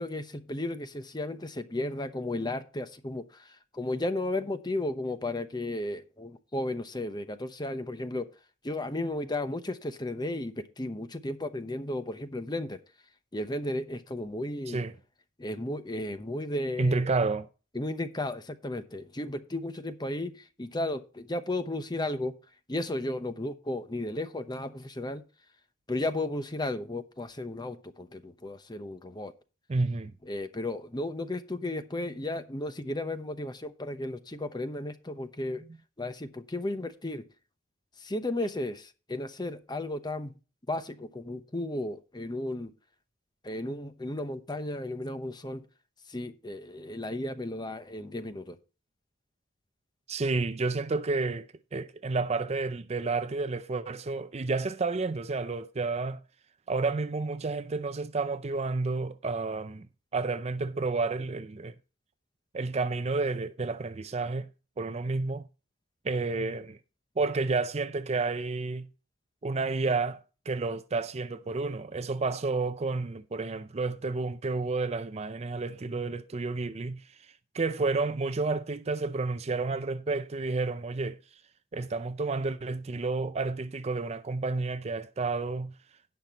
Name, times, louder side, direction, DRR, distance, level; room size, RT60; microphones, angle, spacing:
voice 1, 0.0-8.3 8.6-12.8 13.3-14.8 15.4-17.0 17.7-22.3 22.7-25.2 25.9-29.3 30.2-35.6 36.0-37.2 38.0-40.3 40.7-42.7 43.4-45.6 46.1-48.6, left 1 dB, 20° left, 0.8 m, -34 dB
voice 2, 16.8-17.5 29.7-30.1 50.1-56.2 56.7-59.9 60.1-61.7 62.5-64.5 64.8-65.4 66.0-66.8 67.2-68.9 69.4-77.0 77.5-81.2 81.7-85.7, right 3 dB, 30° right, 0.5 m, -30 dB
17.5 x 5.8 x 2.9 m
head